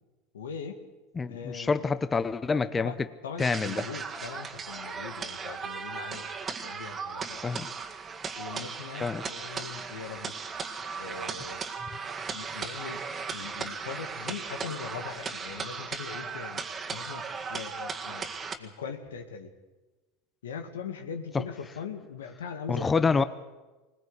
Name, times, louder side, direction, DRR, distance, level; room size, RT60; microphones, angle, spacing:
voice 1, 0.3-0.8 1.3-1.8 2.8-3.0 3.2-6.3 6.6-7.4 8.4-10.4 11.0-11.6 12.3-13.0 13.3-16.6 16.9-17.2 17.5-19.5 20.4-23.3, left 6 dB, 90° left, 7 dB, 2.2 m, -40 dB
voice 2, 1.2-2.9 3.4-3.8 7.4-7.7 9.0-9.3 21.3-21.4 22.7-23.2, left 4 dB, 20° left, 13 dB, 0.8 m, -27 dB
sound 1, 3.4-18.6, right 5 dB, 30° right, 2.0 m, -37 dB
20.5 x 19.5 x 8.2 m, 1.2 s
hypercardioid pair, 95°, 0 cm